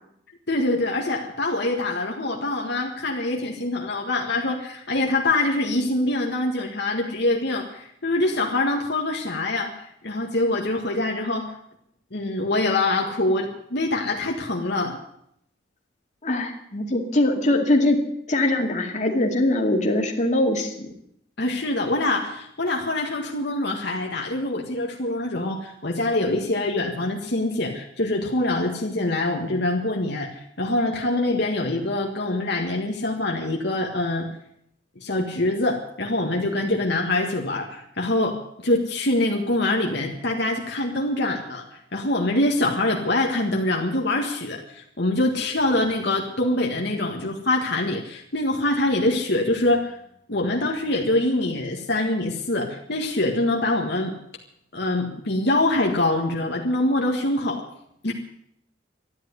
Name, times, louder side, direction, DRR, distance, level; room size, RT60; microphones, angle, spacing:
voice 1, 0.5-11.5 12.1-15.0 21.4-34.3 35.0-41.7 41.9-50.0 50.3-54.1 54.7-57.6 58.0-58.1, left 2 dB, 60° left, 1 dB, 1.8 m, -24 dB
voice 2, 16.2-18.0 18.3-20.9, left 1 dB, 40° left, 2 dB, 2.3 m, -22 dB
13.5 x 10.5 x 9.6 m, 0.73 s
head